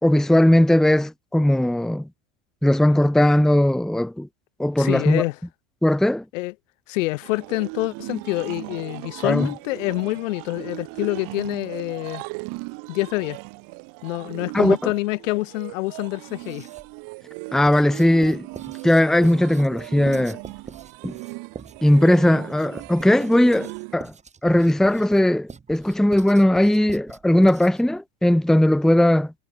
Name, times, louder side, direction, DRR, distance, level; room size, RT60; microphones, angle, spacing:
voice 1, 0.0-2.1 2.6-4.3 4.6-5.2 5.8-6.2 9.2-9.5 14.5-14.8 17.5-18.5 18.8-20.4 21.0-21.1 21.8-24.1 24.4-29.3, left 1 dB, ahead, 1.1 m, -18 dB
voice 2, 4.8-5.4 6.3-6.5 6.9-12.2 12.9-13.4 14.0-16.7, left 21 dB, 70° left, 3.9 m, -26 dB
sound 1, 7.2-23.9, right 30 dB, 55° right, 3.4 m, -38 dB
Writing, 16.3-17.0 17.6-28.0, right 5 dB, 15° right, 6.0 m, -43 dB
supercardioid pair, 130°, 40 cm